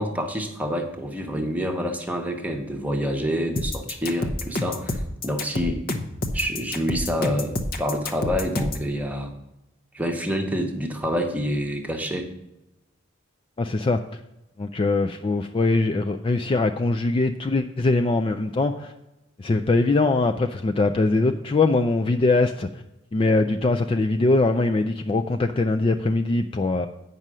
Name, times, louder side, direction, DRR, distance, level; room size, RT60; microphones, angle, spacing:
voice 1, 0.0-5.8 6.3-9.3 9.9-12.3, equal, 10° right, 3 dB, 1.0 m, -27 dB
sound 1, 3.6-8.9, left 2 dB, 45° left, 0.8 m, -28 dB
voice 2, 13.6-14.0 14.6-18.9 19.4-22.7 23.1-26.9, left 2 dB, 25° left, 5 dB, 0.3 m, -22 dB
8.9 x 5.4 x 6.1 m, 0.91 s
head